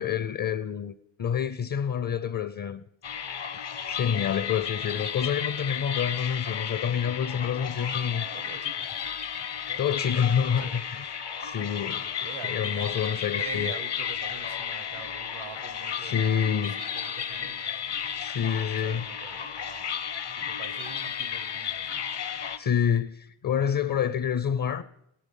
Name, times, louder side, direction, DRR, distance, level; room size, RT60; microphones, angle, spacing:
voice 1, 0.0-2.8 3.9-8.2 9.8-11.1 11.4-12.1 12.5-13.7 16.1-16.8 18.2-19.0 22.6-24.8, left 8 dB, 45° left, 0.6 m, -28 dB
sound 1, 3.0-22.6, left 8 dB, 60° left, 0.9 m, -33 dB
voice 2, 8.2-9.2 9.5-10.1 10.6-10.8 12.2-13.0 13.4-18.1 18.5-19.9 20.3-22.0, right 6 dB, 80° right, 1.2 m, -45 dB
18.5 x 12.0 x 5.4 m
cardioid pair, 75°, 46 cm